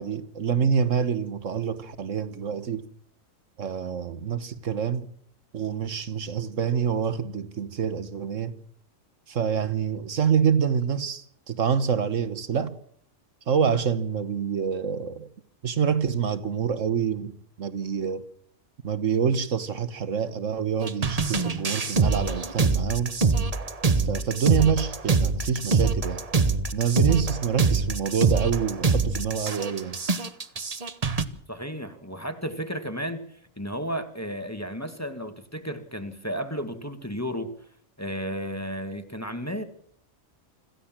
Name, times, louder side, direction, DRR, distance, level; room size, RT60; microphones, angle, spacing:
voice 1, 0.0-2.9 3.6-5.1 5.5-8.6 9.3-12.7 13.5-15.3 15.6-18.3 18.8-23.2 24.0-26.2 26.7-30.0, right 7 dB, 75° right, 1.6 m, -26 dB
sound 1, 20.8-31.2, right 4 dB, 30° right, 1.1 m, -24 dB
voice 2, 31.5-37.5 38.0-39.6, equal, 10° left, 1.8 m, -33 dB
26.0 x 15.5 x 7.5 m
omnidirectional pair, 1.3 m